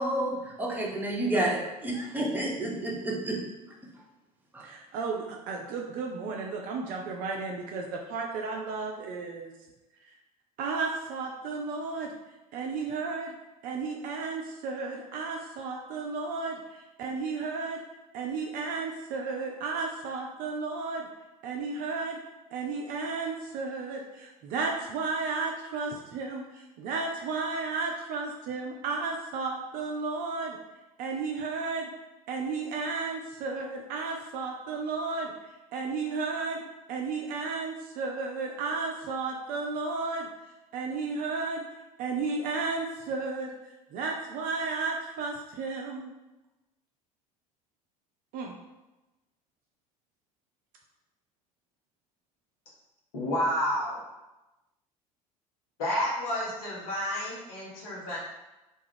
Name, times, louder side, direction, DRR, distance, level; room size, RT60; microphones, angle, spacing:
voice 1, 0.0-3.4 4.5-4.7, right 1 dB, 10° right, 0.7 m, -30 dB
voice 2, 4.6-9.6 10.1-10.2 10.6-12.1 12.5-13.3 13.6-17.8 18.1-21.1 21.4-22.2 22.5-30.6 31.0-31.9 32.3-35.3 35.7-36.6 36.9-40.3 40.7-41.6 42.0-46.1 48.3-48.6, right 4 dB, 50° right, 0.4 m, -33 dB
voice 3, 53.1-54.0 55.8-58.2, equal, 70° left, 0.9 m, -30 dB
2.4 x 2.3 x 3.3 m
figure-of-eight pair, 65°, 19 cm